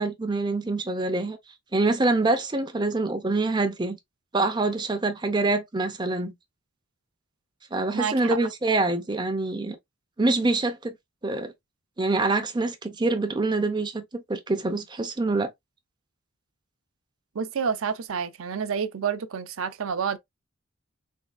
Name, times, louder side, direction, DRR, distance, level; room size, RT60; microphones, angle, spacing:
voice 1, 0.0-1.4 1.7-4.0 4.3-6.3 7.7-9.8 10.2-11.0 11.2-11.5 12.0-15.5, right 2 dB, 20° right, 0.6 m, -25 dB
voice 2, 7.9-8.4 17.3-20.2, right 6 dB, 75° right, 0.5 m, -29 dB
3.6 x 3.2 x 2.2 m
head